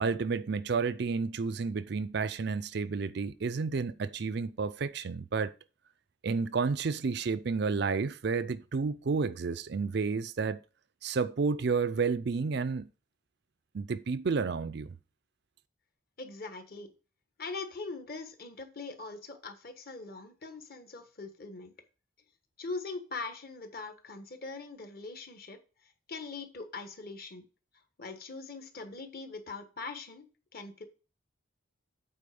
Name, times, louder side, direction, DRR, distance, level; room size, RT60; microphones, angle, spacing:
voice 1, 0.0-5.5 6.2-10.6 11.0-12.9 13.7-14.9, right 4 dB, 50° right, 0.4 m, -31 dB
voice 2, 16.2-16.9 17.4-21.7 22.6-25.6 25.8-27.4 28.0-30.3 30.5-30.8, left 3 dB, 45° left, 1.4 m, -42 dB
8.4 x 4.2 x 6.9 m
head